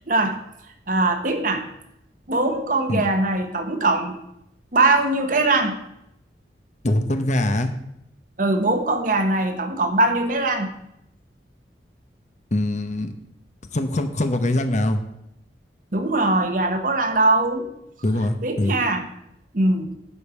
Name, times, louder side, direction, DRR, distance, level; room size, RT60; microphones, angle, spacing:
voice 1, 0.1-0.4 0.9-1.7 2.3-4.2 4.7-5.8 8.4-10.7 15.9-17.7 18.4-19.1 19.5-19.9, right 2 dB, 45° right, 7 dB, 1.1 m, -21 dB
voice 2, 6.8-7.7 12.5-13.1 13.7-15.0 18.0-18.7, left 1 dB, 40° left, 8 dB, 0.9 m, -22 dB
11.0 x 5.3 x 7.1 m, 0.79 s
head